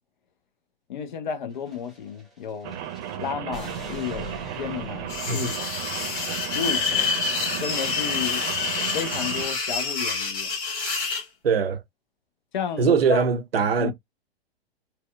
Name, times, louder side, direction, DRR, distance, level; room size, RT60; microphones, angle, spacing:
voice 1, 0.9-2.8 3.2-4.3 4.6-5.7 6.5-7.1 7.6-8.4 8.9-10.5 12.5-13.3 13.8-13.9, left 7 dB, 50° left, 0.7 m, -32 dB
sound 1, 1.5-6.3, left 1 dB, ahead, 1.0 m, -43 dB
Rain, 2.6-9.5, right 11 dB, 25° right, 0.8 m, -35 dB
sound 2, 5.1-11.2, left 5 dB, 25° left, 1.6 m, -27 dB
voice 2, 11.4-11.8 12.8-13.9, right 6 dB, 70° right, 0.6 m, -22 dB
4.2 x 2.3 x 2.3 m
figure-of-eight pair, 110°, 31 cm